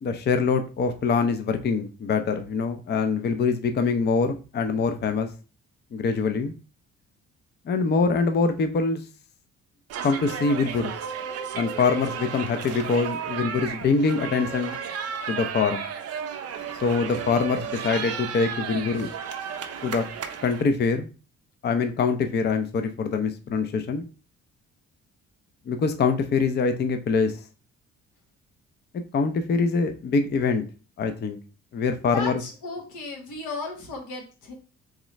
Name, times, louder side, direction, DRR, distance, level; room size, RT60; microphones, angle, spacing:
voice 1, 0.0-5.3 5.9-6.5 7.7-9.0 10.0-10.9 11.5-14.8 15.3-15.8 16.8-19.1 19.8-20.1 20.4-21.1 21.6-24.0 25.7-27.4 29.1-30.6 31.0-31.4 31.7-32.4, left 4 dB, 35° left, 8 dB, 0.5 m, -24 dB
sound 1, 9.9-20.6, right 7 dB, 55° right, 0.6 m, -33 dB
voice 2, 32.1-34.5, left 3 dB, 85° left, 1 dB, 1.3 m, -34 dB
3.6 x 3.1 x 3.1 m, 0.35 s
cardioid pair, 90°, 30 cm